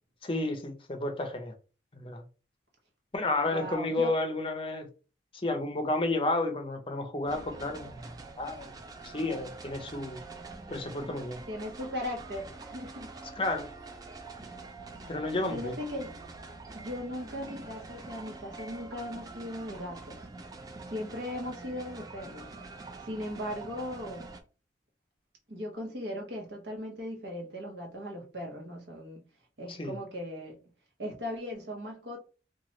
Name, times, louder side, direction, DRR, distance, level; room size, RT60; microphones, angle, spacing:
voice 1, 0.2-1.5 1.9-2.2 3.1-4.9 5.4-7.9 8.4-8.7 9.0-10.2 10.7-11.4 13.4-13.7 15.1-15.7 29.7-29.9, left 2 dB, 30° left, 0.5 m, -31 dB
voice 2, 3.4-4.1 11.5-13.1 15.5-16.2 16.7-20.2 20.9-22.5 23.0-24.3 25.5-29.2 29.6-30.6 31.0-32.2, left 1 dB, 70° right, 1.0 m, -38 dB
sound 1, 7.3-24.4, right 3 dB, 20° right, 0.3 m, -45 dB
3.0 x 2.3 x 3.0 m
head